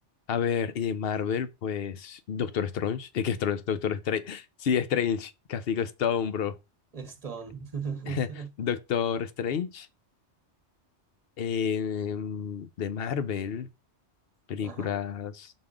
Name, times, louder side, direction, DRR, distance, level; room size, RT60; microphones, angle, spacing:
voice 1, 0.3-6.6 8.1-8.3 8.6-9.9 11.4-13.7 14.5-15.5, left 7 dB, 60° left, 0.9 m, -29 dB
voice 2, 6.9-8.5 14.6-15.0, right 6 dB, 35° right, 1.1 m, -37 dB
6.1 x 3.6 x 4.9 m
omnidirectional pair, 1.2 m